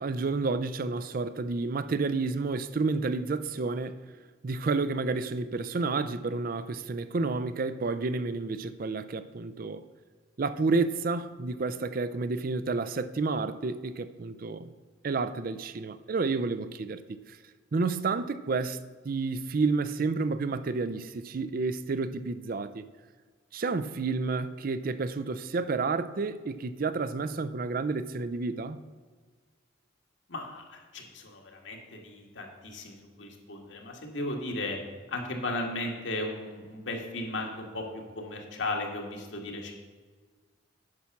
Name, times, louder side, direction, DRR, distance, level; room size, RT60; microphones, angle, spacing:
voice 1, 0.0-4.0 4.4-9.8 10.4-14.7 15.0-17.0 17.3-17.4 17.7-22.9 23.5-28.8, right 3 dB, 45° right, 0.4 m, -30 dB
voice 2, 30.3-34.8 35.1-37.8 38.2-39.7, left 2 dB, 70° left, 1.7 m, -36 dB
9.6 x 5.7 x 5.9 m
head